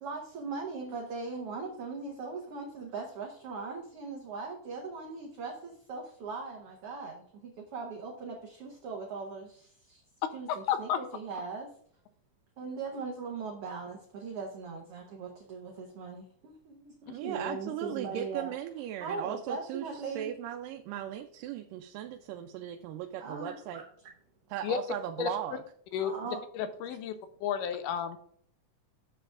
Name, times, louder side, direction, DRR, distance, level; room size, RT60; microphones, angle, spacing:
voice 1, 0.0-10.0 10.3-11.7 12.6-18.5 19.0-20.3 23.2-23.9 26.0-26.4, right 4 dB, 60° right, -1 dB, 1.6 m, -40 dB
voice 2, 10.5-11.0 17.1-17.2 24.6-24.8 25.2-25.3 25.9-26.1 26.6-27.1 27.4-28.2, left 9 dB, 85° left, 9 dB, 2.3 m, -31 dB
voice 3, 17.1-23.8 24.5-25.6, right 11 dB, 90° right, 5 dB, 2.2 m, -37 dB
11.5 x 7.6 x 2.4 m, 0.62 s
omnidirectional pair, 3.7 m